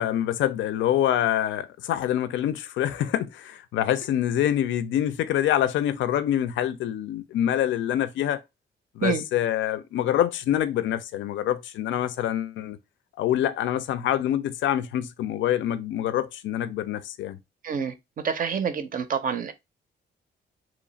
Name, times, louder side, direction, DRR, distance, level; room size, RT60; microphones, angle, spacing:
voice 1, 0.0-8.4 9.0-12.8 13.2-17.4, left 11 dB, 80° left, 0.4 m, -26 dB
voice 2, 17.6-17.9 18.2-19.5, right 6 dB, 45° right, 0.5 m, -27 dB
3.1 x 2.4 x 3.8 m
cardioid pair, 145°, 19 cm